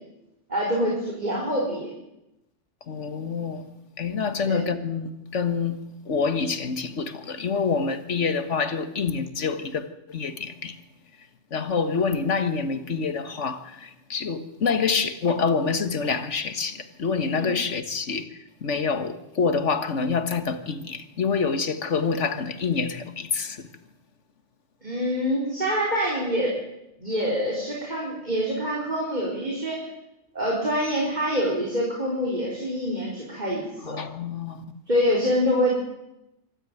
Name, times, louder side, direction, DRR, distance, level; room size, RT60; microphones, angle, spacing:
voice 1, 0.5-1.9 4.5-4.6 17.3-17.5 24.8-26.5 27.0-29.8 30.3-34.0 34.9-35.8, equal, 40° right, 4.7 m, -25 dB
voice 2, 2.9-3.7 4.0-5.8 6.1-10.8 11.5-23.7 33.8-34.7, left 5 dB, 80° left, 1.9 m, -27 dB
25.0 x 13.5 x 9.2 m
omnidirectional pair, 1.2 m